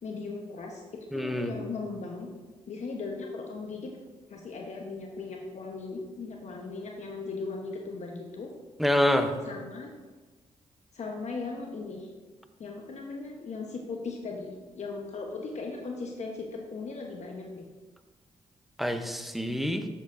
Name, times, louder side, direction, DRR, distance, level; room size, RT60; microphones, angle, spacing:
voice 1, 0.0-0.8 1.1-2.3 2.7-4.0 4.3-8.5 9.4-9.9 10.9-12.1 12.6-17.6, left 4 dB, 60° left, 1 dB, 1.1 m, -38 dB
voice 2, 1.1-1.5 8.8-9.3 18.8-19.9, left 1 dB, ahead, 7 dB, 0.9 m, -26 dB
11.0 x 7.5 x 2.7 m, 1.3 s
supercardioid pair, 55°, 13 cm